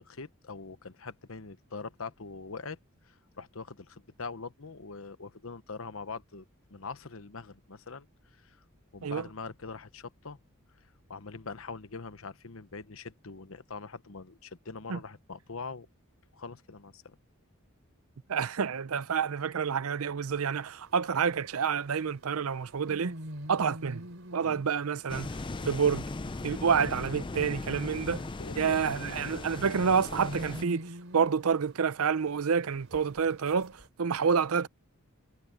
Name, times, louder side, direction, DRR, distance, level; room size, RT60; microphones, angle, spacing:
voice 1, 0.0-2.8 3.0-6.4 6.7-8.6 8.9-10.4 11.1-15.9 16.3-17.2 24.4-24.6 28.4-29.3, left 4 dB, 70° left, 1.0 m, -43 dB
voice 2, 18.3-23.1 23.5-24.0 24.3-25.4 25.7-26.1 26.4-28.3 28.6-34.7, right 6 dB, 80° right, 0.6 m, -28 dB
sound 1, 20.4-33.9, equal, 60° right, 5.4 m, -47 dB
sound 2, 25.1-30.7, left 2 dB, 20° left, 0.4 m, -38 dB
head